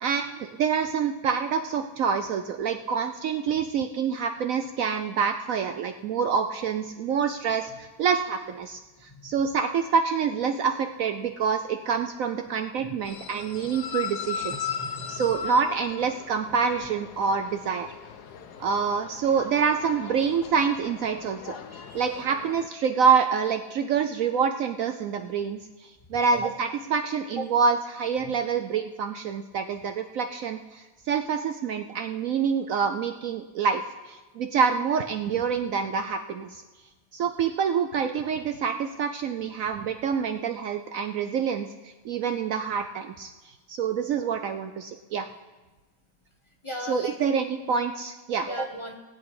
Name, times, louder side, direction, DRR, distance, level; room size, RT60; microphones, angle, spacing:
voice 1, 0.0-14.7 15.1-17.9 18.6-21.5 21.9-33.8 34.1-36.6 37.1-43.3 43.7-45.3 46.9-48.5, right 6 dB, 65° right, 7 dB, 0.9 m, -26 dB
sound 1, 13.0-22.7, left 7 dB, 80° left, 1.4 m, -38 dB
voice 2, 14.5-15.2 21.7-22.0 26.3-26.4 27.4-27.5 28.2-28.3 46.6-47.2 48.5-48.9, right 1 dB, 20° left, 1 dB, 1.1 m, -36 dB
19.5 x 8.2 x 4.8 m, 1.2 s
omnidirectional pair, 1.7 m